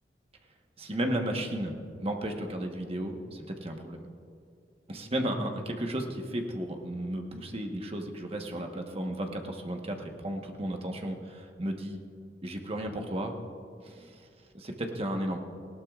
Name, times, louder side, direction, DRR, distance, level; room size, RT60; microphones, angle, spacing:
voice 1, 0.8-4.0 4.9-12.0 12.4-13.3 13.8-14.3 14.5-15.4, right 1 dB, 35° right, 3 dB, 1.2 m, -34 dB
19.0 x 17.0 x 2.5 m, 2.3 s
head